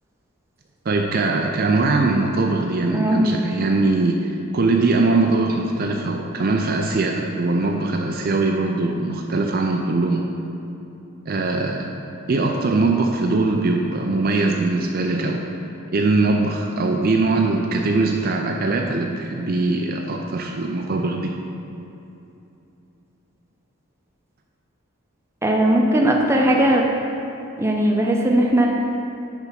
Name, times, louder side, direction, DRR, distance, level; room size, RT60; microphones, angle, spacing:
voice 1, 0.9-10.2 11.3-11.9 12.3-15.4 15.9-21.3, right 3 dB, 45° right, 2 dB, 0.4 m, -21 dB
voice 2, 2.9-3.3 25.4-26.9 27.6-28.7, right 1 dB, 10° right, -1 dB, 0.7 m, -18 dB
9.5 x 3.5 x 5.8 m, 2.8 s
head